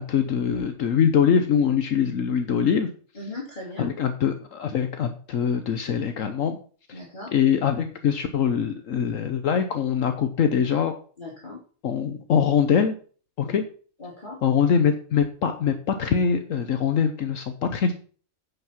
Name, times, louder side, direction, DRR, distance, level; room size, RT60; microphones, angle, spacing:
voice 1, 0.0-2.9 3.8-6.6 6.9-7.0 7.3-10.9 11.8-13.0 13.4-13.6 14.4-17.9, left 7 dB, 70° left, 7 dB, 1.2 m, -23 dB
voice 2, 3.1-3.9 6.9-7.3 11.2-11.6 13.4-13.6 14.0-14.4, left 2 dB, 35° left, -4 dB, 2.9 m, -38 dB
9.3 x 5.7 x 5.8 m, 0.41 s
omnidirectional pair, 1.5 m